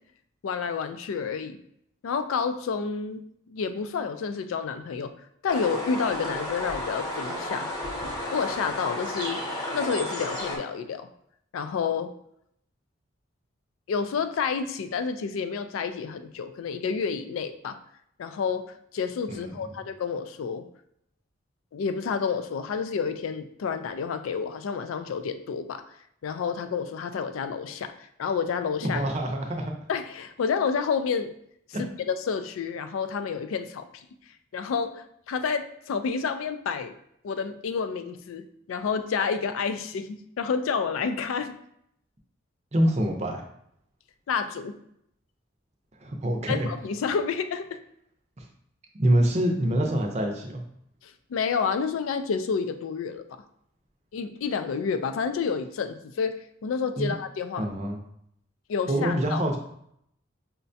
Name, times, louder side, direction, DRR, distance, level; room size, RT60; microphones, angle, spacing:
voice 1, 0.4-1.6 2.0-5.1 5.4-7.7 8.3-9.4 9.7-11.1 11.5-12.1 13.9-17.8 18.2-20.7 21.7-25.8 26.2-29.0 29.9-31.3 31.8-34.1 34.5-36.9 37.2-41.6 44.3-44.8 46.5-47.8 51.0-53.2 54.1-57.7 58.7-59.4, left 6 dB, 90° left, 10 dB, 0.3 m, -29 dB
sound 1, 5.5-10.6, left 1 dB, 20° left, 0.7 m, -32 dB
voice 2, 19.3-19.7 28.8-29.7 31.7-31.8 42.7-43.4 46.0-46.7 48.4-48.5 48.9-50.6 57.0-57.1 57.6-58.0 58.9-59.6, right 1 dB, 35° right, 2 dB, 0.5 m, -26 dB
5.6 x 2.2 x 2.6 m, 0.72 s
head